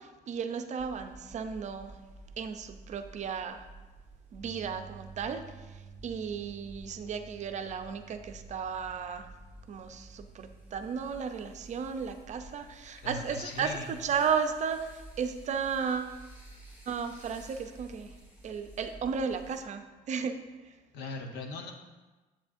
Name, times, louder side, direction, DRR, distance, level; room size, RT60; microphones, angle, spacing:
voice 1, 0.0-2.0 2.4-3.7 4.3-9.3 9.7-16.2 16.9-18.1 18.4-20.3, right 6 dB, 45° right, 7 dB, 0.5 m, -34 dB
sound 1, 0.8-19.6, right 1 dB, 35° left, 2.3 m, -52 dB
sound 2, 4.4-16.7 17.0-17.3 19.5-19.6, right 7 dB, 25° right, 1.1 m, -55 dB
voice 2, 13.0-13.9 20.9-21.7, left 3 dB, 80° left, 4 dB, 0.9 m, -39 dB
7.5 x 7.2 x 2.6 m, 1.2 s
cardioid pair, 110°, 17 cm